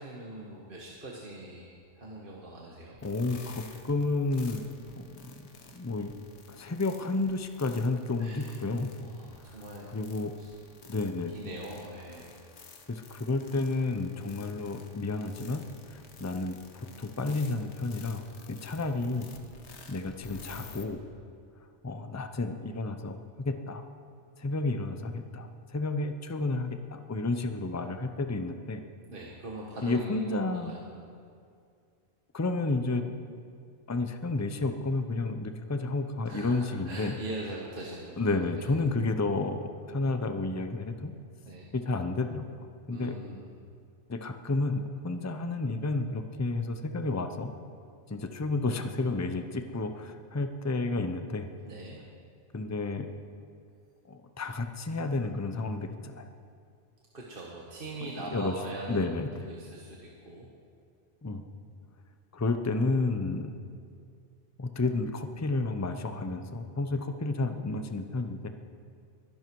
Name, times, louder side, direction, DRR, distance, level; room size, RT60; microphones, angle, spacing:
voice 1, 0.0-3.0 8.2-8.6 9.0-9.9 10.4-10.5 11.3-12.3 29.1-30.8 36.2-38.3 41.4-41.7 42.9-43.6 51.6-52.0 57.1-59.0 59.4-60.5, right 1 dB, 50° right, -3 dB, 1.6 m, -42 dB
sound 1, 3.0-20.8, left 4 dB, 70° left, 1.4 m, -51 dB
voice 2, 3.0-4.6 5.0-6.2 6.5-8.9 9.9-10.3 10.9-11.3 12.9-19.3 19.9-21.0 21.8-23.8 24.4-28.8 29.8-30.8 32.3-33.0 33.9-37.1 38.2-41.1 41.7-42.5 42.9-43.1 44.1-47.5 48.1-51.5 52.5-53.1 54.1-56.3 58.3-58.5 58.9-59.3 61.2-61.4 62.3-63.6 64.6-68.5, left 3 dB, 15° left, 7 dB, 0.7 m, -31 dB
23.0 x 11.0 x 4.7 m, 2.3 s
omnidirectional pair, 1.2 m